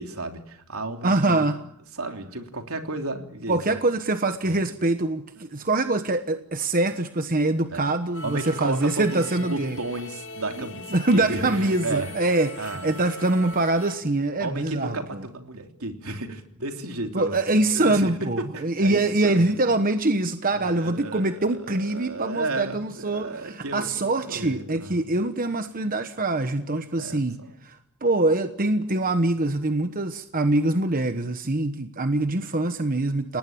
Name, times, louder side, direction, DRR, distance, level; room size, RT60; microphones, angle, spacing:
voice 1, 0.0-1.5 1.9-3.8 4.4-4.5 7.7-7.9 8.2-12.1 12.6-12.9 14.4-17.4 17.7-19.6 20.5-25.0 26.9-27.6, right 2 dB, 75° right, 5 dB, 3.3 m, -33 dB
voice 2, 1.0-1.6 3.5-9.8 10.9-15.0 17.1-27.4 27.6-33.4, right 2 dB, 40° right, 9 dB, 1.2 m, -24 dB
sound 1, 8.1-14.0, left 2 dB, 60° left, 2.3 m, -40 dB
29.5 x 19.0 x 8.7 m, 0.69 s
head